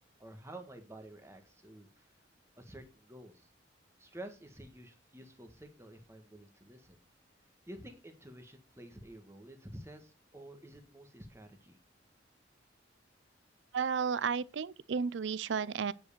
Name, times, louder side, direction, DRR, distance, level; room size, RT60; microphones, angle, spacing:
voice 1, 0.2-2.1 2.6-3.5 4.0-7.0 7.7-11.8, right 1 dB, 15° right, 1.5 m, -50 dB
voice 2, 13.7-15.9, right 6 dB, 70° right, 0.5 m, -33 dB
9.4 x 5.4 x 6.6 m
head